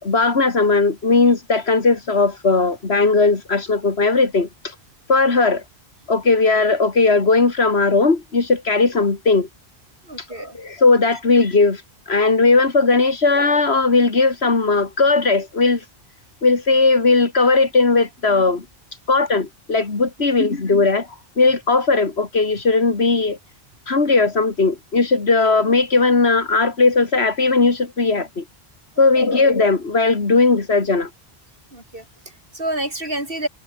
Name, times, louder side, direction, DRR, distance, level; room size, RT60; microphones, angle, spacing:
voice 1, 0.0-4.7 5.1-5.6 6.1-9.5 10.6-11.8 12.1-15.8 16.4-18.7 19.1-21.1 21.4-23.4 23.9-28.4 29.0-31.1, left 3 dB, 85° left, 2.7 m, -17 dB
voice 2, 10.0-10.6 29.0-29.1 31.7-33.5, right 1 dB, 60° right, 6.4 m, -29 dB
omnidirectional pair, 1.0 m